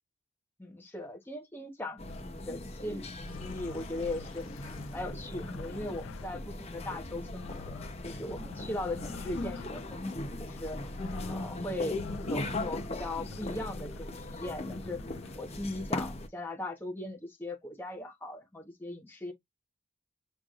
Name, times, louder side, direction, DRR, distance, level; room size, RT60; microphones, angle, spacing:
voice 1, 0.6-10.9 11.3-15.0 15.3-19.3, left 1 dB, 10° left, 1.2 m, -39 dB
sound 1, 2.0-16.3, left 1 dB, 30° left, 0.8 m, -39 dB
sound 2, 2.1-2.4 3.1-6.6 7.1-15.6, left 7 dB, 70° left, 0.3 m, -48 dB
6.1 x 3.3 x 2.5 m
head